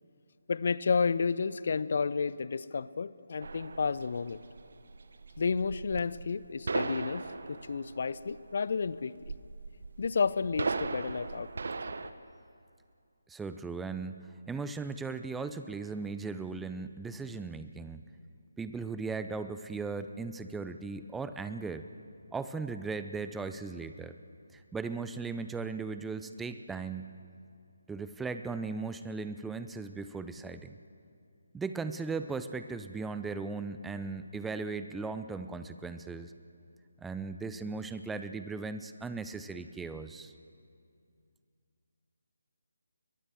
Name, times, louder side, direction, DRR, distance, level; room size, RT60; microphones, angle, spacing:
voice 1, 0.5-4.4 5.4-9.1 10.0-11.5, left 5 dB, 45° left, 18 dB, 0.5 m, -31 dB
sound 1, 3.4-12.1, right 4 dB, 55° right, 1.1 m, -38 dB
voice 2, 13.3-14.2 14.5-18.0 18.6-21.9 22.3-24.1 24.5-27.1 27.9-30.7 31.5-36.3 37.0-40.3, right 4 dB, 5° right, 10 dB, 0.6 m, -37 dB
22.5 x 20.5 x 7.6 m, 2.4 s
figure-of-eight pair, 150°, 0 cm